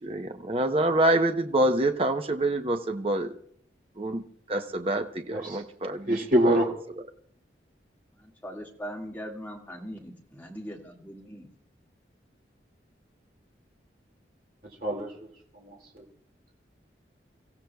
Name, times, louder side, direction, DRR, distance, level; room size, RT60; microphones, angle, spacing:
voice 1, 0.0-3.3 4.0-4.2 4.5-6.2 6.4-6.6, right 1 dB, 30° right, 6 dB, 0.8 m, -26 dB
voice 2, 5.3-5.6 6.1-6.7 14.8-15.1 15.5-16.0, right 1 dB, 50° right, 0 dB, 2.3 m, -25 dB
voice 3, 8.2-11.5, equal, 10° left, -1 dB, 1.9 m, -40 dB
29.5 x 15.5 x 2.3 m, 0.63 s
head